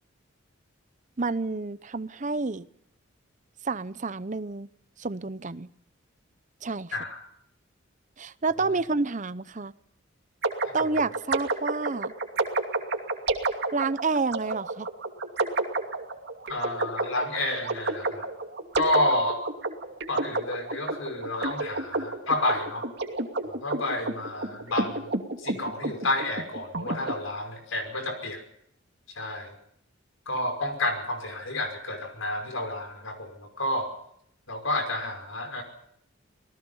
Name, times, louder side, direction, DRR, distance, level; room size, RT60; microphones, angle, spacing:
voice 1, 1.2-2.7 3.6-4.7 5.0-5.7 6.6-6.9 8.2-9.7 10.7-12.1 13.7-14.9, right 3 dB, 35° right, 16 dB, 0.7 m, -29 dB
sound 1, 10.4-27.1, right 2 dB, 55° right, 2.7 m, -30 dB
voice 2, 16.5-18.3 18.7-19.4 20.1-22.9 23.4-25.1 25.4-28.4 29.2-29.6 30.3-33.9 34.5-35.6, left 1 dB, 75° left, 6 dB, 5.6 m, -30 dB
27.0 x 18.5 x 5.6 m, 0.72 s
head